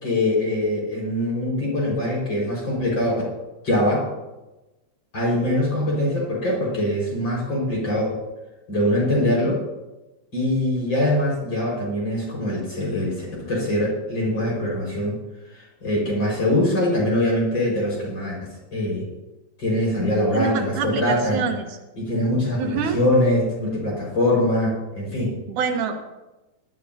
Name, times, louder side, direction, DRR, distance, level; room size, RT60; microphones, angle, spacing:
voice 1, 0.0-3.2 3.6-4.0 5.1-8.1 8.7-9.6 10.3-15.2 15.8-18.4 18.7-19.1 19.6-21.4 22.0-25.4, left 1 dB, 35° left, -4 dB, 5.7 m, -23 dB
voice 2, 20.3-21.7 22.6-23.0 25.5-26.0, right 5 dB, 80° right, 5 dB, 2.7 m, -26 dB
19.5 x 12.5 x 2.8 m, 1.1 s
omnidirectional pair, 3.5 m